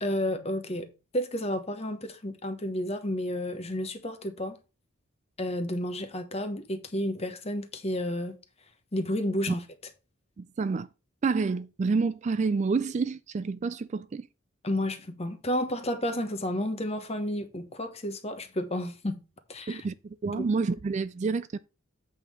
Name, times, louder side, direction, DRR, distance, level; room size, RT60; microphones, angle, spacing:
voice 1, 0.0-0.9 1.1-4.6 5.4-8.4 8.9-9.7 14.6-19.2 19.5-19.8 20.3-20.5, left 1 dB, 30° left, 1.2 m, -31 dB
voice 2, 10.4-10.9 11.2-14.3 19.7-21.6, right 4 dB, 35° right, 0.3 m, -28 dB
8.2 x 3.7 x 6.4 m
head